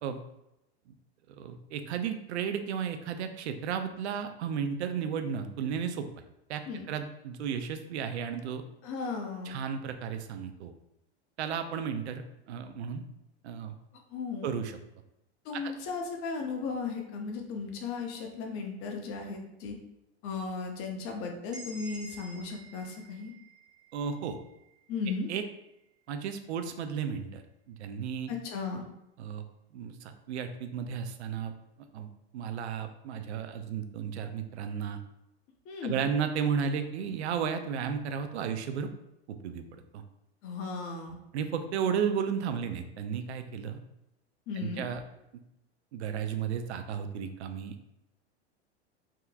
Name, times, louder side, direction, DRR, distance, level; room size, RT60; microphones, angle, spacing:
voice 1, 1.4-6.1 6.5-6.6 6.9-8.6 9.5-10.7 11.4-13.0 13.4-13.8 14.4-14.8 15.5-15.6 23.9-24.4 25.3-25.4 26.1-28.3 29.2-29.4 29.7-31.5 31.9-35.0 35.8-38.9 39.3-40.0 41.3-43.8 44.6-45.0 45.9-47.7, right 7 dB, 75° right, 8 dB, 0.5 m, -33 dB
voice 2, 8.8-9.6 14.1-14.5 15.4-19.8 20.2-23.3 24.9-25.3 28.3-28.8 35.7-35.9 40.4-41.2 44.5-44.9, left 4 dB, 40° left, 2 dB, 0.8 m, -36 dB
sound 1, 21.5-25.3, right 2 dB, 10° right, 0.7 m, -50 dB
3.5 x 2.9 x 2.3 m, 0.87 s
hypercardioid pair, 110°, 34 cm